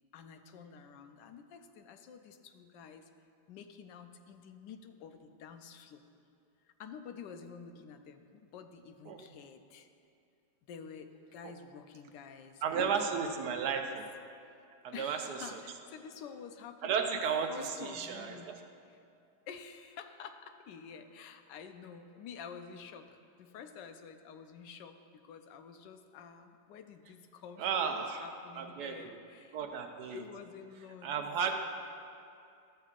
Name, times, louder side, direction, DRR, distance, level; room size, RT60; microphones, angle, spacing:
voice 1, 0.1-3.1 3.5-6.0 6.6-9.9 10.7-13.9 14.9-17.2 17.5-18.6 18.9-19.0 19.5-29.6 30.1-31.1, left 6 dB, 90° left, 8 dB, 1.2 m, -49 dB
voice 2, 12.6-14.1 14.8-15.4 16.8-18.6 27.6-28.3 28.5-29.2 29.5-30.2 31.0-31.5, right 6 dB, 75° right, 5 dB, 1.1 m, -34 dB
13.0 x 7.5 x 2.4 m, 2.5 s
omnidirectional pair, 1.8 m